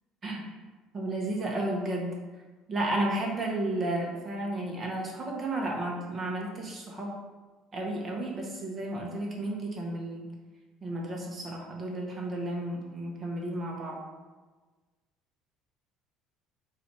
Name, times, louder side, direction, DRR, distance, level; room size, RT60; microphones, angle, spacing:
voice 1, 0.9-2.1 2.7-7.1 7.7-10.3 10.8-14.0, right 1 dB, 35° right, -1 dB, 1.2 m, -32 dB
4.0 x 2.7 x 4.5 m, 1.3 s
hypercardioid pair, 60°, 0 cm